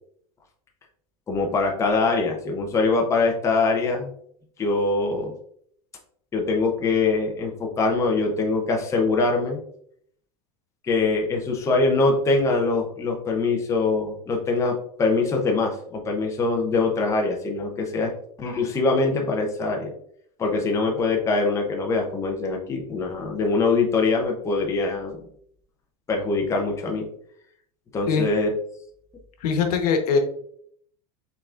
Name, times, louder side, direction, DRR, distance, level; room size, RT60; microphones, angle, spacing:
voice 1, 1.3-4.1 4.6-5.3 6.3-9.6 10.9-18.1 18.4-19.9 20.4-25.3 26.1-27.1 27.9-28.5, left 3 dB, 15° left, 1 dB, 0.6 m, -23 dB
voice 2, 29.4-30.2, left 5 dB, 90° left, 5 dB, 1.1 m, -21 dB
5.8 x 3.6 x 2.4 m, 0.66 s
supercardioid pair, 155°, 19 cm